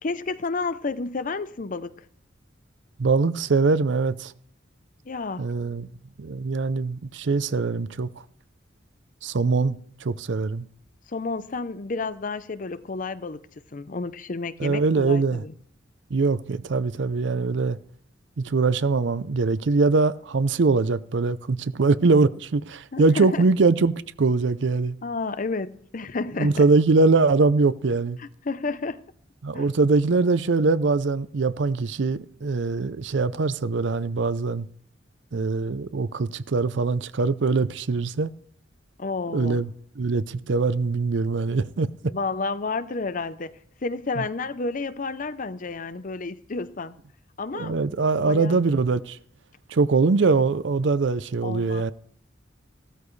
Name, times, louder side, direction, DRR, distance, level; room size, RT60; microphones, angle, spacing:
voice 1, 0.0-2.0 5.0-5.5 11.1-13.4 13.7-15.5 22.9-23.4 25.0-26.6 28.2-29.0 29.5-29.8 39.0-39.6 42.0-46.9 47.4-48.6 51.4-51.9, left 3 dB, 45° left, 0.6 m, -31 dB
voice 2, 3.0-4.3 5.4-5.9 6.2-8.1 9.2-10.7 14.6-15.4 16.1-17.8 18.4-25.0 26.4-28.2 29.4-34.7 35.3-38.3 39.3-39.7 40.0-41.9 44.2-44.3 47.5-49.2 49.7-51.9, right 4 dB, 65° right, 0.5 m, -22 dB
15.5 x 13.5 x 3.2 m
head